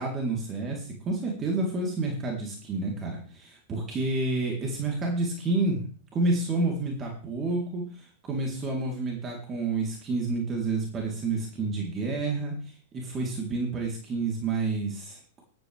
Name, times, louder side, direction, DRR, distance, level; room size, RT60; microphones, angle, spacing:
voice 1, 0.0-5.8 6.1-15.4, right 3 dB, 25° right, 0 dB, 3.6 m, -29 dB
14.0 x 12.0 x 3.5 m, 0.41 s
figure-of-eight pair, 105°, 0 cm